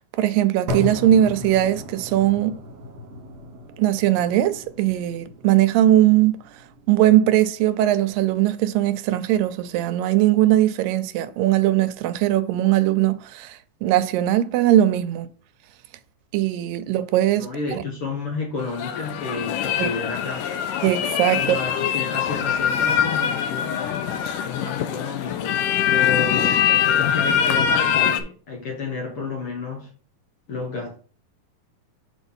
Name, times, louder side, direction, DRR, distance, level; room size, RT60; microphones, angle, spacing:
voice 1, 0.2-2.6 3.8-6.4 6.9-15.3 16.3-17.8 19.8-19.9 20.8-21.6, right 13 dB, 85° right, 2.3 m, -20 dB
sound 1, 0.7-8.7, equal, 55° right, 2.6 m, -36 dB
voice 2, 17.4-20.4 21.4-23.8 24.4-29.9 30.5-30.9, left 4 dB, 50° left, 1.9 m, -31 dB
sound 2, 18.6-28.2, left 9 dB, 80° left, 2.3 m, -23 dB
6.7 x 4.1 x 5.3 m
omnidirectional pair, 3.9 m